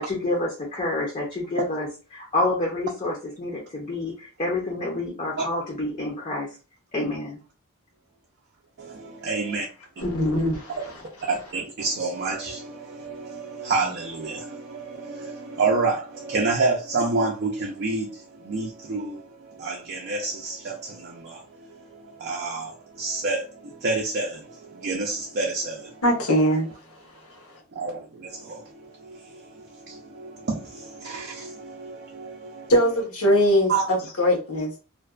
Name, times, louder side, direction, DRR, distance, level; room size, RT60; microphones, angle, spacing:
voice 1, 0.0-6.5 6.9-7.4, left 2 dB, 30° left, 0.6 m, -28 dB
voice 2, 8.8-9.7 11.2-26.0 27.7-32.7 33.7-33.9, right 3 dB, 50° right, 0.4 m, -29 dB
voice 3, 10.0-10.8 26.0-26.7 27.2-27.4 32.7-34.7, equal, 70° left, 0.9 m, -21 dB
2.5 x 2.2 x 2.3 m
head